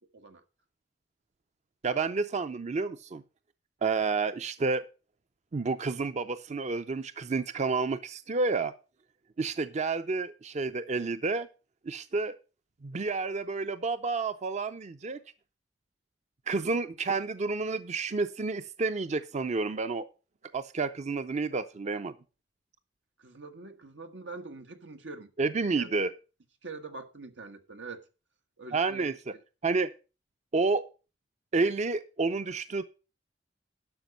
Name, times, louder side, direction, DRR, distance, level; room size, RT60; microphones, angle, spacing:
voice 1, 1.8-3.2 3.8-4.8 5.5-8.7 9.4-11.5 11.9-12.4 12.8-15.2 16.5-20.1 20.5-22.1 25.4-26.1 28.7-29.1 29.6-29.9 30.5-30.8 31.5-32.8, right 4 dB, 40° right, 0.5 m, -30 dB
voice 2, 23.2-25.3 25.7-25.9 26.6-28.1 28.6-29.2, right 3 dB, 90° right, 1.4 m, -44 dB
11.5 x 6.1 x 5.2 m
head